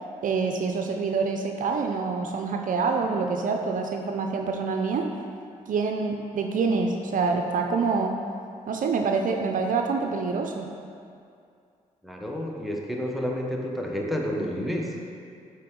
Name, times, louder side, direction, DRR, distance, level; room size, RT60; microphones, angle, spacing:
voice 1, 0.2-5.1 5.7-8.2 8.7-10.7, right 4 dB, 60° right, 3 dB, 0.5 m, -26 dB
voice 2, 12.0-14.9, equal, ahead, -1 dB, 1.1 m, -30 dB
7.4 x 4.4 x 3.8 m, 2.4 s
supercardioid pair, 50°, 15 cm